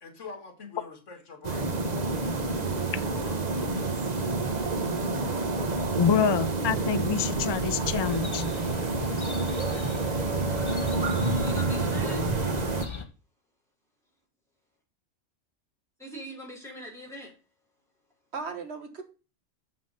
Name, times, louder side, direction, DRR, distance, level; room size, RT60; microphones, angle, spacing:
voice 1, 0.0-2.6 3.0-3.8, left 4 dB, 75° left, 2.2 m, -46 dB
sound 1, 1.4-12.9, right 3 dB, 35° right, 1.1 m, -28 dB
voice 2, 6.0-8.4, left 7 dB, 45° left, 0.3 m, -26 dB
Chirp tweet, 8.0-13.1, left 4 dB, 25° left, 1.0 m, -39 dB
voice 3, 11.4-12.3 16.0-17.3, right 1 dB, ahead, 4.2 m, -40 dB
voice 4, 18.3-19.0, right 4 dB, 60° right, 1.6 m, -40 dB
7.2 x 5.8 x 5.5 m
omnidirectional pair, 1.3 m